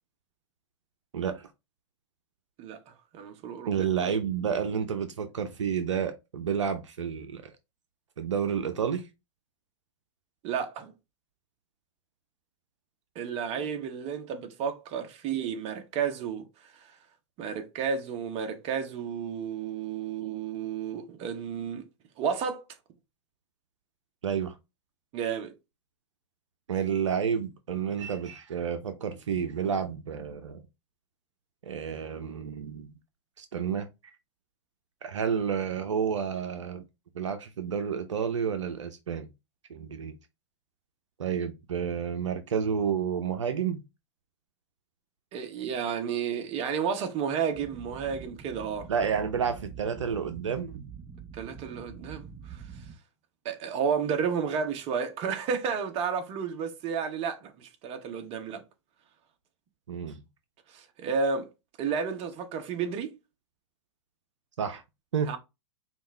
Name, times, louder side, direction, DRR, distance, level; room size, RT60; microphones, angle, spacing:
voice 1, 2.6-3.9 10.4-10.9 13.1-16.4 16.7-17.0 17.4-21.9 22.2-22.7 25.1-25.5 45.3-48.9 51.3-52.6 53.4-58.6 60.7-61.5 61.8-63.2 65.3-65.4, right 6 dB, 40° right, 1.0 m, -32 dB
voice 2, 3.7-7.5 8.2-9.0 24.2-24.5 26.7-30.6 31.6-32.9 33.4-33.9 35.0-36.8 37.1-39.3 39.7-40.1 41.2-43.8 48.9-50.9 59.9-60.2 64.6-64.8 65.1-65.4, right 7 dB, 80° right, 0.7 m, -30 dB
sound 1, 47.5-52.9, right 7 dB, 20° right, 1.2 m, -45 dB
5.3 x 2.5 x 3.2 m
hypercardioid pair, 105°, 15 cm